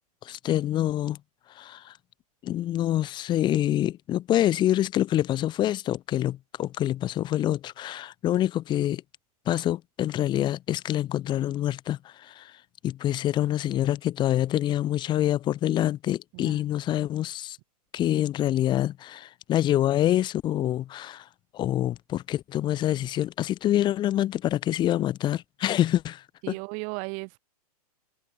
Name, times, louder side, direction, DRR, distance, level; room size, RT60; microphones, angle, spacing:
voice 1, 0.2-1.2 1.5-1.9 2.4-9.0 9.5-12.5 12.8-17.6 17.9-21.3 21.5-26.6, left 13 dB, 20° left, 0.9 m, -26 dB
voice 2, 26.4-27.4, right 34 dB, 40° right, 3.0 m, -35 dB
figure-of-eight pair, 110°, 20 cm